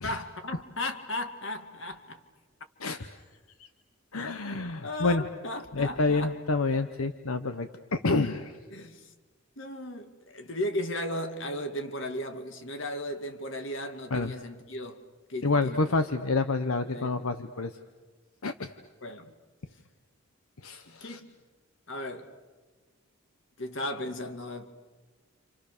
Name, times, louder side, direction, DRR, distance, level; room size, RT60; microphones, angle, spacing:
voice 1, 0.0-2.2 4.5-6.3 8.7-9.1 9.6-15.0 15.3-15.9 16.9-17.1 19.0-19.3 20.9-21.3 21.9-22.3 23.6-24.6, left 1 dB, 60° left, 2.2 m, -36 dB
voice 2, 4.1-5.2 5.7-8.6 14.1-14.3 15.4-17.7 18.4-18.7 20.6-21.2, left 3 dB, 80° left, 1.1 m, -28 dB
29.5 x 27.5 x 6.8 m
head